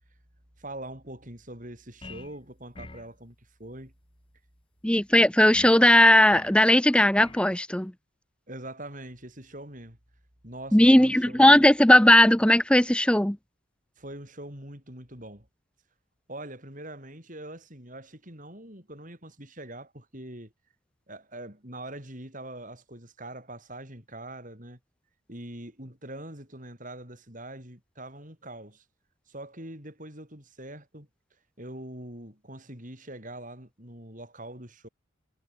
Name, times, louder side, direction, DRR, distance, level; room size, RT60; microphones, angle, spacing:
voice 1, 0.6-3.9 8.5-10.0 10.4-11.7 14.0-15.5 16.3-20.5 21.1-24.8 25.3-28.8 29.3-31.1 31.6-34.9, right 1 dB, 40° right, 7.2 m, -43 dB
sound 1, 2.0-2.4 2.7-3.1 5.5-5.8 6.3-6.6 7.2-7.5, left 2 dB, 25° left, 1.2 m, -44 dB
voice 2, 4.8-7.9 10.7-13.4, left 1 dB, 5° left, 0.6 m, -18 dB
head